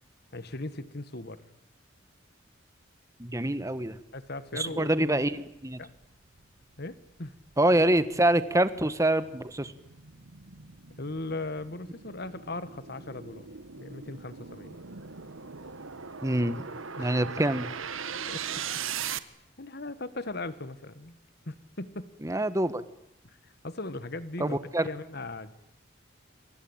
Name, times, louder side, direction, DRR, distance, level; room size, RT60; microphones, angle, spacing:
voice 1, 0.3-1.6 4.1-5.0 5.8-5.9 6.8-7.3 11.0-13.5 13.8-14.8 17.0-17.1 18.3-18.6 19.6-21.2 21.5-22.1 23.2-23.4 23.6-25.5, left 2 dB, 50° left, 13 dB, 1.7 m, -38 dB
voice 2, 3.2-4.0 4.5-5.8 7.6-9.7 16.2-16.7 17.0-17.7 22.2-22.8 24.4-24.9, right 1 dB, 15° right, 13 dB, 1.4 m, -26 dB
sound 1, 5.5-19.2, right 7 dB, 80° right, 1.4 m, -40 dB
28.5 x 23.5 x 8.9 m, 0.75 s
head